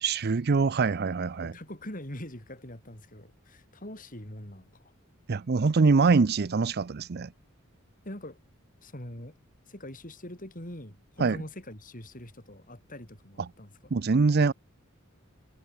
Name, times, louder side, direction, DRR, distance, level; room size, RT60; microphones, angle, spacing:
voice 1, 0.0-1.5 5.3-7.3 11.2-11.4 13.4-13.5 13.9-14.5, right 4 dB, 50° right, 0.5 m, -24 dB
voice 2, 1.3-4.9 8.0-8.4 8.8-9.3 9.7-13.7, left 1 dB, 40° left, 6.1 m, -43 dB
head